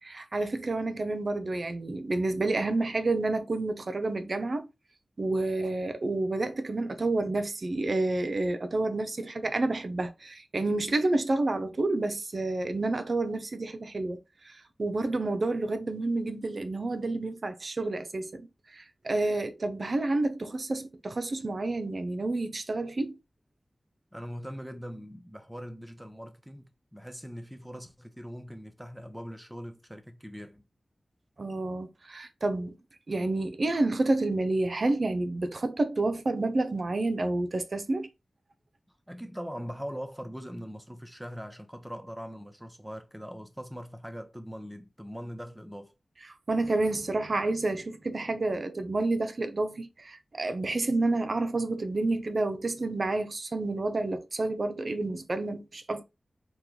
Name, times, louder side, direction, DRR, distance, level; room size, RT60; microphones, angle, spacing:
voice 1, 0.0-4.7 5.2-23.2 31.4-32.8 33.1-38.1 46.5-56.0, right 2 dB, 60° right, 0.5 m, -29 dB
voice 2, 24.1-26.6 26.9-30.6 39.1-45.9, equal, 5° right, 0.7 m, -41 dB
2.9 x 2.2 x 3.7 m
cardioid pair, 45°, 0 cm